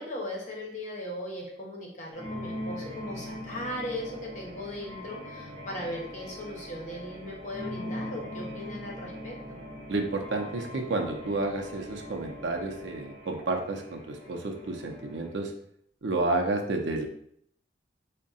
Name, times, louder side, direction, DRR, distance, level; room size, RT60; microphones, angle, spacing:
voice 1, 0.0-9.3, left 1 dB, 45° left, -2 dB, 0.9 m, -38 dB
sound 1, 2.1-15.4, left 1 dB, 35° right, 0.9 m, -41 dB
voice 2, 9.9-15.5 16.0-17.1, right 2 dB, 90° right, 3 dB, 0.6 m, -30 dB
3.6 x 2.2 x 4.0 m, 0.69 s
head